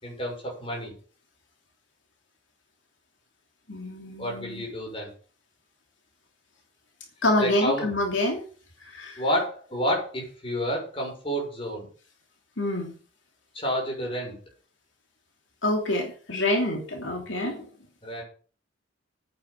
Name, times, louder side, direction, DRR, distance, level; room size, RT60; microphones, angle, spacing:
voice 1, 0.0-0.9 4.2-5.1 7.4-7.9 9.2-11.9 13.5-14.4 18.0-18.2, equal, 30° left, 0 dB, 6.6 m, -29 dB
voice 2, 3.7-4.7 7.2-8.4 8.8-9.2 12.6-12.9 15.6-17.7, left 1 dB, 75° left, 0 dB, 3.0 m, -27 dB
9.3 x 9.0 x 7.2 m, 0.41 s
head